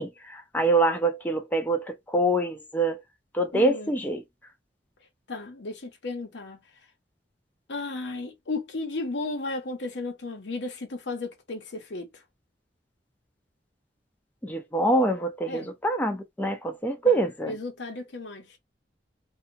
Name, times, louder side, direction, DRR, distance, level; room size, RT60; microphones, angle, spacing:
voice 1, 0.0-3.0 3.3-4.2 14.4-17.5, right 2 dB, 10° left, 0.5 m, -25 dB
voice 2, 3.5-3.9 5.3-6.6 7.7-12.2 15.5-15.7 17.0-18.6, left 3 dB, 85° left, 0.8 m, -34 dB
2.7 x 2.3 x 2.7 m
head